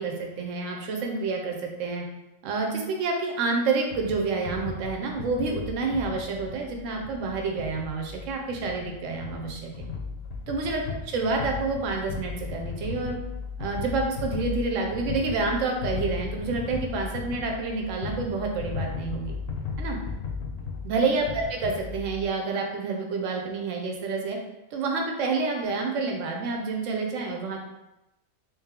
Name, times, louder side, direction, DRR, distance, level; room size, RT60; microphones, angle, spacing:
voice 1, 0.0-2.0 2.4-9.9 10.5-13.2 13.6-19.3 19.8-20.0 20.8-24.4 24.7-27.6, right 3 dB, 85° right, 1 dB, 1.0 m, -28 dB
sound 1, 3.9-22.3, left 5 dB, 60° left, 0.8 m, -36 dB
3.2 x 3.0 x 3.5 m, 0.95 s
omnidirectional pair, 1.3 m